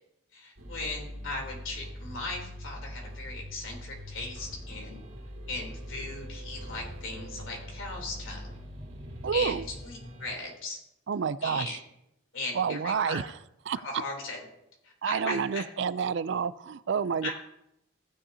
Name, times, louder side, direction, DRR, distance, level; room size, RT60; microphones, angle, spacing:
voice 1, 0.3-5.0 5.5-8.6 9.3-9.6 9.8-10.8 11.4-11.8 12.3-13.2 13.8-14.4 14.8-15.6 17.2-17.3, left 2 dB, 70° left, 0 dB, 3.3 m, -38 dB
sound 1, 0.6-10.4, equal, 80° right, 2.4 m, -42 dB
voice 2, 9.2-9.7 11.1-11.8 12.5-13.4 13.7-14.0 15.0-17.3, right 6 dB, 60° right, 16 dB, 0.4 m, -29 dB
15.5 x 9.8 x 2.8 m, 0.83 s
head